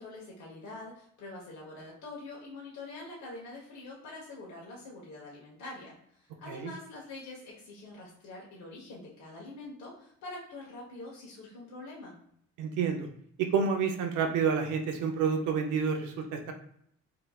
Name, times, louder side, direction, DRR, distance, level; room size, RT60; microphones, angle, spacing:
voice 1, 0.0-12.2, left 2 dB, 70° left, -4 dB, 1.1 m, -45 dB
voice 2, 12.6-13.1 13.4-16.5, right 6 dB, 90° right, 4 dB, 0.6 m, -29 dB
3.7 x 2.9 x 2.3 m, 0.69 s
cardioid pair, 90°, 30 cm